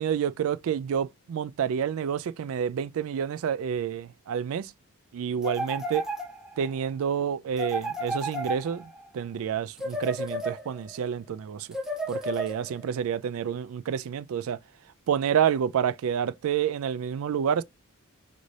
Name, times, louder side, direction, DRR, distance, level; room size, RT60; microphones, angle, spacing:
voice 1, 0.0-4.7 5.1-6.0 6.6-8.8 9.1-11.7 12.1-14.6 15.1-17.6, right 8 dB, 70° right, 0.3 m, -28 dB
sound 1, 5.4-6.7 7.6-9.1 9.8-11.0 11.7-12.9, right 1 dB, ahead, 0.5 m, -33 dB
5.2 x 2.6 x 3.1 m
head